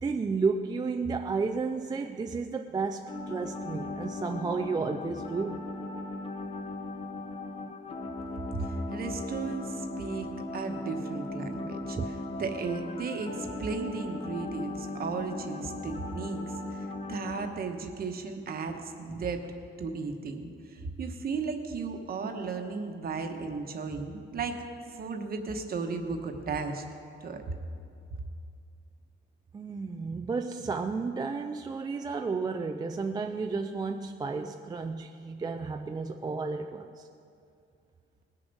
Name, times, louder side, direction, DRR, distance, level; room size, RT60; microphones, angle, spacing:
voice 1, 0.0-5.6 12.0-12.1 29.5-37.1, right 4 dB, 20° right, 5 dB, 0.3 m, -32 dB
sound 1, 3.1-17.5, left 2 dB, 30° left, 0.9 m, -38 dB
voice 2, 8.5-12.0 12.3-19.4 19.8-24.6 24.9-26.8 27.2-27.5, right 4 dB, 45° right, 5 dB, 1.1 m, -35 dB
20.0 x 6.9 x 5.4 m, 2.4 s
cardioid pair, 165°, 21 cm